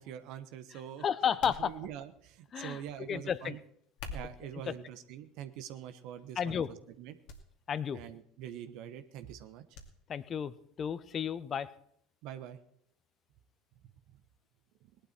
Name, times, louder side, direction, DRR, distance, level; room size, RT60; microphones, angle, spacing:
voice 1, 0.0-1.0 1.6-3.6 4.1-7.2 7.9-9.6 12.2-12.6, right 10 dB, 60° right, 9 dB, 1.1 m, -44 dB
voice 2, 0.7-1.8 2.5-3.6 4.6-4.7 6.4-6.7 7.7-8.0 10.1-11.7, left 8 dB, 35° left, 16 dB, 1.0 m, -33 dB
sound 1, 1.4-2.2 3.8-4.6 5.3-5.7 6.1-6.3 7.3-7.4 7.7-7.8 9.7-9.9 10.3-10.4, left 3 dB, 65° left, 2.4 m, -46 dB
19.0 x 11.5 x 4.4 m, 0.68 s
hypercardioid pair, 70°, 0 cm